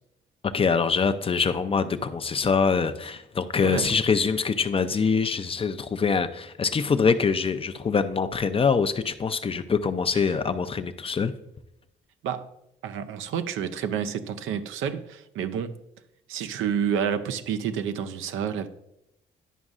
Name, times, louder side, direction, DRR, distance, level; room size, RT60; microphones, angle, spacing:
voice 1, 0.5-11.3, left 5 dB, 30° left, 10 dB, 0.5 m, -24 dB
voice 2, 3.6-3.9 10.1-10.2 12.2-12.5 12.8-15.7 16.3-18.7, right 8 dB, 85° right, 9 dB, 0.6 m, -29 dB
11.0 x 5.2 x 2.5 m, 0.81 s
cardioid pair, 90°, 20 cm